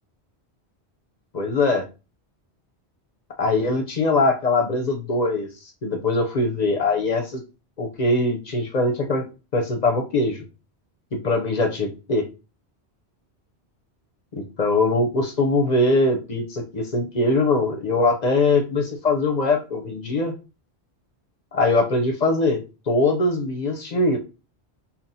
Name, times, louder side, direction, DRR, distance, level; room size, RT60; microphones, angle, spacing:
voice 1, 1.3-1.9 3.4-7.4 7.8-10.4 11.1-12.3 14.3-20.3 21.5-22.6 22.9-24.2, left 2 dB, 50° left, 3 dB, 0.6 m, -22 dB
5.6 x 2.1 x 2.6 m, 0.31 s
omnidirectional pair, 1.1 m